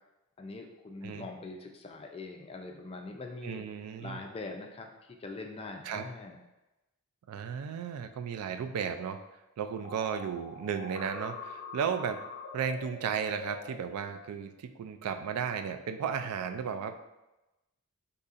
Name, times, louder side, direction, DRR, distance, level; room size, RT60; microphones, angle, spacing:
voice 1, 0.4-3.7 4.0-4.9 5.2-6.4, left 3 dB, 25° left, 3 dB, 0.3 m, -42 dB
voice 2, 3.4-4.2 5.8-6.0 7.3-9.2 9.6-12.2 12.5-16.9, right 7 dB, 85° right, 9 dB, 0.3 m, -34 dB
sound 1, 9.8-13.7, left 3 dB, 85° left, 0.5 m, -44 dB
4.0 x 2.7 x 2.5 m, 0.99 s
head